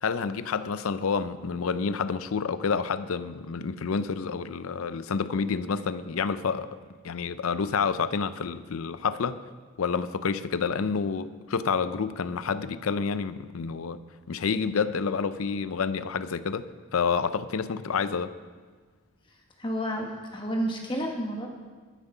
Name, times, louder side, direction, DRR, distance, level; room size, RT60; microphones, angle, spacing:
voice 1, 0.0-6.8 7.0-9.4 9.8-14.0 14.3-16.7 16.9-18.3, left 5 dB, 85° left, 0.5 m, -29 dB
voice 2, 19.6-21.5, equal, 25° left, 1.4 m, -30 dB
11.5 x 9.8 x 5.6 m
head